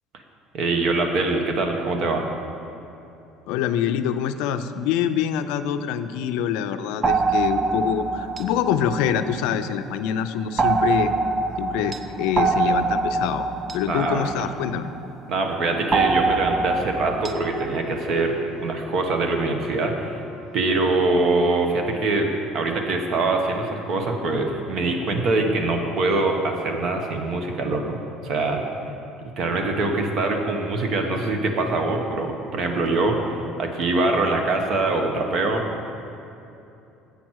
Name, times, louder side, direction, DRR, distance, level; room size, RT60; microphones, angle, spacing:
voice 1, 0.5-2.3 13.9-14.2 15.3-20.2 20.5-28.0 28.2-28.6 29.4-35.6, right 2 dB, 45° right, 3 dB, 1.0 m, -23 dB
voice 2, 3.5-11.1 11.6-13.5 13.7-14.9, left 9 dB, 80° left, 10 dB, 0.4 m, -25 dB
sound 1, 7.0-9.8 10.6-15.1 15.9-17.7, right 4 dB, 20° right, 0.4 m, -24 dB
Wind instrument woodwind instrument, 17.2-21.5, left 1 dB, 5° left, 1.3 m, -40 dB
8.4 x 5.9 x 6.3 m, 2.8 s
cardioid pair, 145°, 0 cm